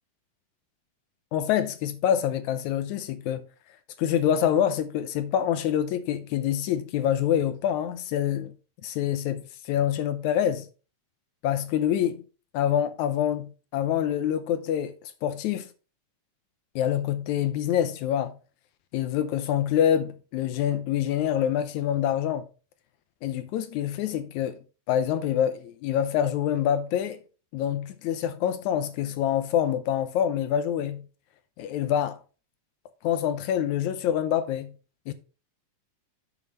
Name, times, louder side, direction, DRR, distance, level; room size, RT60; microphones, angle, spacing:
voice 1, 1.3-3.4 4.0-8.5 8.8-10.7 11.4-12.2 12.5-14.9 15.2-15.7 16.8-18.4 18.9-22.5 23.2-24.6 24.9-27.2 27.5-31.1 31.6-32.2 33.0-34.7 35.1-35.2, left 10 dB, 80° left, 2.1 m, -26 dB
7.1 x 6.1 x 4.3 m
omnidirectional pair, 3.4 m